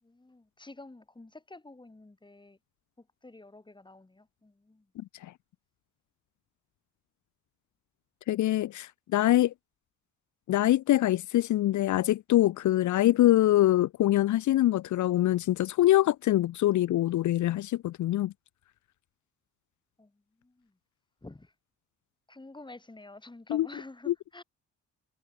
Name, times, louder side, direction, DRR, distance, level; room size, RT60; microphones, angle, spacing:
voice 1, 0.0-2.6 3.0-4.9 20.0-20.1 20.4-20.7 21.2-21.5 22.3-24.4, left 2 dB, 15° left, 7.4 m, -49 dB
voice 2, 5.0-5.3 8.3-9.5 10.5-18.3 23.5-23.7 24.1-24.2, left 14 dB, 70° left, 1.0 m, -24 dB
cardioid pair, 90°, 30 cm